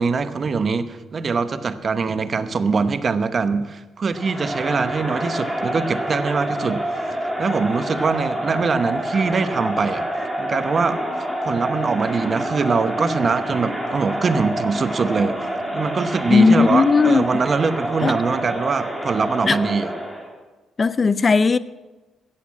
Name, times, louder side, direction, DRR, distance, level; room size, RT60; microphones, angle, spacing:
voice 1, 0.0-7.0 7.4-10.1 10.4-15.5 15.7-19.9, right 4 dB, 40° right, 0.9 m, -23 dB
Crowd, 4.1-20.3, equal, 5° right, 2.8 m, -27 dB
voice 2, 16.3-17.4 18.0-18.2 19.4-19.6 20.8-21.6, left 4 dB, 35° left, 0.5 m, -16 dB
14.5 x 8.4 x 7.3 m
cardioid pair, 90°, 0 cm